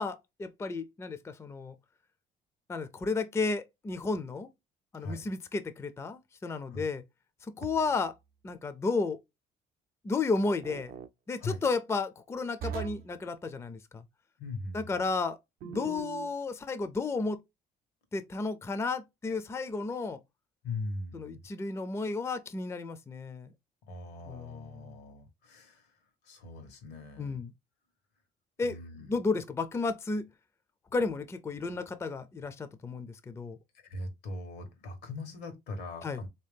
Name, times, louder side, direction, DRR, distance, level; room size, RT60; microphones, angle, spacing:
voice 1, 0.0-1.7 2.7-4.5 4.9-7.0 7.6-8.2 8.4-9.2 10.0-10.9 11.3-14.0 14.7-15.4 15.6-17.4 18.1-20.2 21.1-23.5 24.3-24.9 27.2-27.5 28.6-28.8 29.1-30.3 30.9-33.6 36.0-36.2, left 3 dB, 15° left, 0.4 m, -33 dB
UI Sounds, 7.6-8.1 10.6-11.1 12.6-13.1 15.6-16.3, right 8 dB, 60° right, 0.5 m, -40 dB
voice 2, 14.4-15.1 20.6-21.4 23.9-27.4 28.6-29.2 33.7-36.3, left 2 dB, 85° left, 1.2 m, -41 dB
3.4 x 2.8 x 3.4 m
cardioid pair, 110°, 17 cm